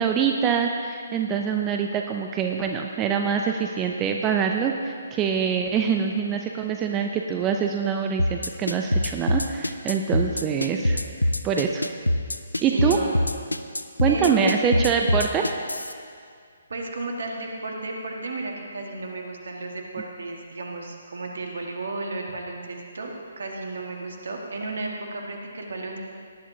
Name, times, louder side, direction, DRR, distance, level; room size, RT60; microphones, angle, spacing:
voice 1, 0.0-11.0 11.4-11.9 12.6-13.0 14.0-15.5, right 7 dB, 20° right, 3 dB, 0.6 m, -24 dB
sound 1, 8.2-15.9, left 1 dB, 85° left, 0.6 m, -23 dB
voice 2, 12.6-13.3 14.1-15.2 16.7-26.0, right 2 dB, 60° right, 1 dB, 1.8 m, -33 dB
18.5 x 11.0 x 2.9 m, 2.2 s
figure-of-eight pair, 135°, 0 cm